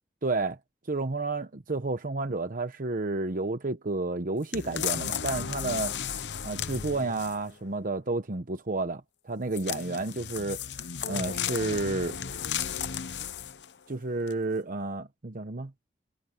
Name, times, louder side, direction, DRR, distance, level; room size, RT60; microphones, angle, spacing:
voice 1, 0.2-0.6 0.8-5.9 6.4-10.8 11.1-12.2 13.9-15.7, right 3 dB, 50° right, 1.0 m, -31 dB
sound 1, 4.5-7.5 9.5-13.7 14.3-14.4, left 8 dB, 85° left, 0.9 m, -34 dB
head